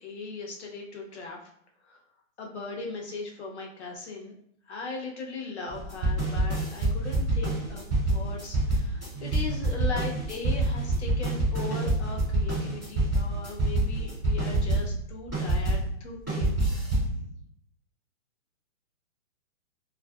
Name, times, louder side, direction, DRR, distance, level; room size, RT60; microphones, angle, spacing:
voice 1, 0.0-1.4 1.9-2.0 2.4-4.3 4.7-17.3, left 3 dB, 55° left, 0 dB, 0.7 m, -39 dB
sound 1, 5.7-15.9 16.3-17.1, right 2 dB, 15° left, 0.5 m, -26 dB
2.6 x 2.4 x 2.3 m, 0.69 s
hypercardioid pair, 180°, 41 cm